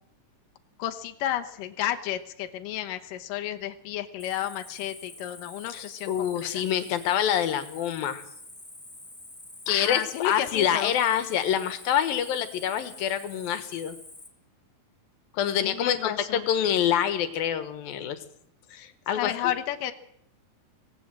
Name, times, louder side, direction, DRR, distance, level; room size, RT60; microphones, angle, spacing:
voice 1, 0.8-6.6 9.7-11.0 15.6-16.5 19.2-19.9, left 12 dB, 70° left, 6 dB, 2.8 m, -32 dB
Cricket, 4.2-14.3, left 2 dB, 10° left, 2.1 m, -47 dB
voice 2, 5.7-8.2 9.7-14.0 15.3-18.2 18.7-19.5, left 9 dB, 90° left, 11 dB, 3.1 m, -26 dB
25.0 x 17.5 x 7.6 m, 0.71 s
omnidirectional pair, 4.0 m